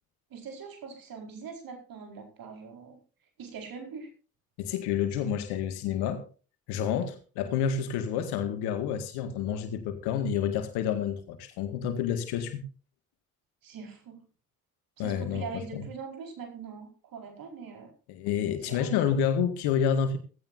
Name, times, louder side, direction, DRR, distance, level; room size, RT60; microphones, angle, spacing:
voice 1, 0.3-3.0 3.4-4.1 13.6-14.2 15.0-17.9 18.7-19.2, right 5 dB, 55° right, 5.0 m, -42 dB
voice 2, 4.6-6.2 6.7-12.6 15.0-15.5 15.7-15.8 18.1-20.2, left 8 dB, 65° left, 2.0 m, -29 dB
17.0 x 16.5 x 2.7 m
figure-of-eight pair, 50°, 42 cm